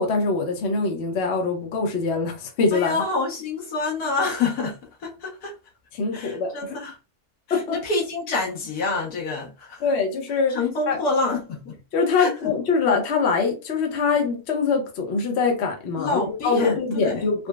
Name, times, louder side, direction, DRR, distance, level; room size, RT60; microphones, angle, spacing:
voice 1, 0.0-3.0 5.9-6.8 7.5-7.8 9.8-10.6 10.9-11.0 11.9-17.5, left 4 dB, 55° left, 0.9 m, -23 dB
voice 2, 2.7-4.8 5.0-5.5 6.1-6.9 7.5-9.8 10.5-11.8 12.2-12.5 16.0-17.2, left 3 dB, 80° left, 1.5 m, -27 dB
3.8 x 2.0 x 2.3 m
omnidirectional pair, 1.6 m